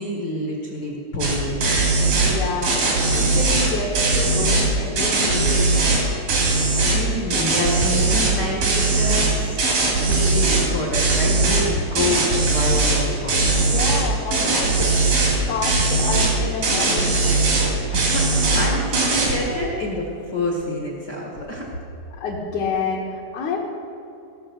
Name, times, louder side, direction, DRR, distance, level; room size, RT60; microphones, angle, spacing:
voice 1, 0.0-1.9 6.9-9.6 10.0-13.6 17.9-21.7, left 1 dB, 40° left, -3 dB, 1.6 m, -27 dB
sound 1, 1.2-1.4 1.6-2.4 2.6-4.7 5.0-6.0 6.3-7.0 7.3-8.3 8.6-10.7 10.9-11.7 12.0-13.0 13.3-14.0 14.3-15.4 15.6-16.3 16.6-17.7 17.9-18.7 18.9-19.4, right 3 dB, 70° right, 4.5 m, -19 dB
voice 2, 2.1-6.0 13.6-15.0 15.4-17.5 22.2-23.6, left 4 dB, 65° left, -4 dB, 2.6 m, -28 dB
17.5 x 6.9 x 7.0 m, 2.9 s
omnidirectional pair, 3.9 m